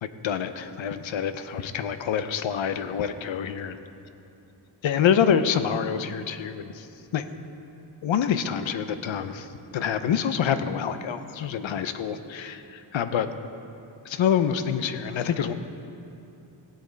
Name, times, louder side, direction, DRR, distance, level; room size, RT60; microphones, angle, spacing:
voice 1, 0.0-3.7 4.8-6.9 7.1-7.2 8.0-13.3 14.1-15.5, left 8 dB, 75° left, 10 dB, 0.7 m, -26 dB
17.5 x 7.7 x 3.9 m, 2.8 s
wide cardioid pair, 105°, 47 cm